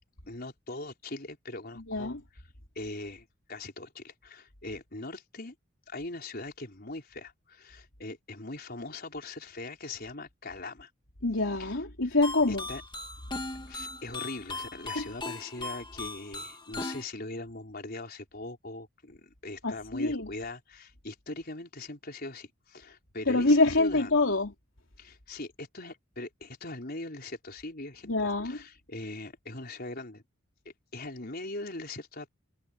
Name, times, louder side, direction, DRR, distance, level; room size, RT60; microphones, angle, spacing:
voice 1, 0.3-2.1 2.7-5.5 5.9-10.9 11.6-11.8 12.0-12.2 12.5-12.8 13.7-24.1 25.0-30.2 30.6-32.3, left 2 dB, 45° left, 4.7 m, -41 dB
voice 2, 1.9-2.2 11.2-12.7 15.0-15.1 19.6-20.3 23.3-24.5 28.0-28.6, left 2 dB, 70° left, 3.5 m, -26 dB
sound 1, 12.2-17.0, left 2 dB, 20° left, 2.0 m, -39 dB
head